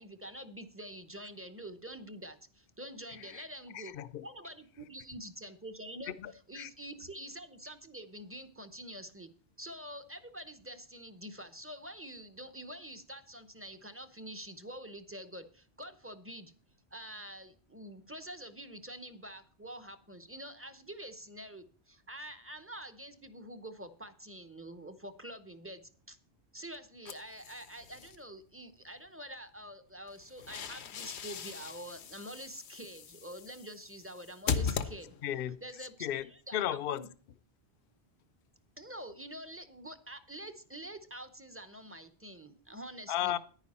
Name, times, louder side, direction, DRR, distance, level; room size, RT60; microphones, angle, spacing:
voice 1, 0.0-3.9 4.2-6.2 6.5-9.3 9.6-16.5 16.9-26.2 26.5-35.1 35.6-37.1 38.8-43.4, right 1 dB, 15° right, 0.7 m, -46 dB
voice 2, 3.1-3.4 3.7-4.2 6.2-6.7 35.2-35.6 36.0-36.3 36.5-37.0 43.1-43.4, left 11 dB, 60° left, 0.7 m, -35 dB
sound 1, 27.0-28.2 30.1-35.5, left 6 dB, 80° left, 1.0 m, -39 dB
10.0 x 9.9 x 4.2 m
omnidirectional pair, 1.1 m